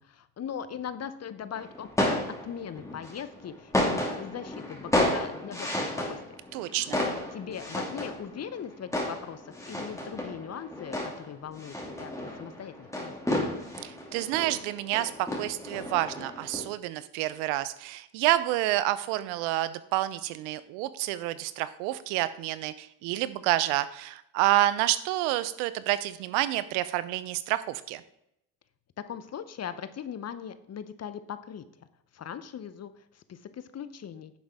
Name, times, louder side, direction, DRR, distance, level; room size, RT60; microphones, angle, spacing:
voice 1, 0.0-2.2 2.4-6.4 6.6-13.2 29.1-31.6 32.1-34.3, left 8 dB, 30° left, 13 dB, 0.7 m, -40 dB
sound 1, 1.5-16.6, left 1 dB, 5° left, 2.5 m, -32 dB
voice 2, 6.5-7.0 13.8-28.0, right 15 dB, 70° right, 15 dB, 0.8 m, -29 dB
10.0 x 7.3 x 3.6 m, 0.79 s
hypercardioid pair, 75°, 49 cm